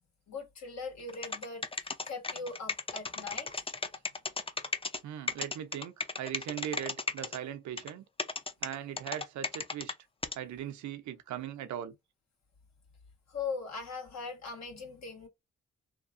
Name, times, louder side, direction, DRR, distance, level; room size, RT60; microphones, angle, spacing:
voice 1, 0.3-3.6 13.3-15.3, left 4 dB, 65° left, 1.5 m, -40 dB
sound 1, 1.1-5.0 5.3-7.4 7.8-7.9 8.2-9.9 10.2-10.4, left 3 dB, 20° left, 0.6 m, -34 dB
voice 2, 5.0-8.0 8.6-9.9 10.3-12.0, right 10 dB, 75° right, 0.6 m, -39 dB
2.8 x 2.2 x 2.5 m
hypercardioid pair, 40°, 29 cm